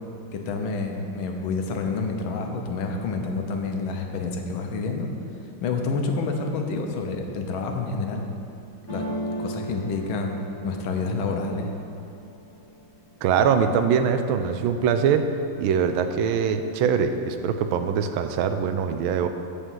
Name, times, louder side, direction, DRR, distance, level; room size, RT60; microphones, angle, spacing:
voice 1, 0.3-5.1 5.6-8.3 8.9-9.0 9.4-11.7, left 4 dB, 80° left, 3 dB, 1.6 m, -28 dB
sound 1, 8.9-12.7 13.2-13.8 14.1-14.9, right 1 dB, 10° left, 1.7 m, -36 dB
voice 2, 13.2-15.3 15.6-19.3, right 7 dB, 80° right, 8 dB, 1.4 m, -23 dB
8.2 x 5.0 x 7.2 m, 2.7 s
omnidirectional pair, 2.2 m